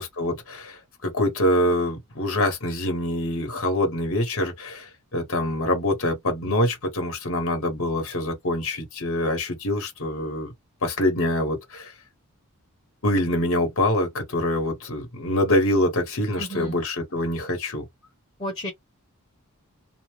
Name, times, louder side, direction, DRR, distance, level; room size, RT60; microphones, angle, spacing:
voice 1, 0.0-10.5 10.8-11.9 13.0-17.8, left 1 dB, 60° left, 1.1 m, -25 dB
voice 2, 16.4-16.8 18.4-18.7, equal, 25° left, 0.9 m, -32 dB
2.6 x 2.1 x 3.1 m
head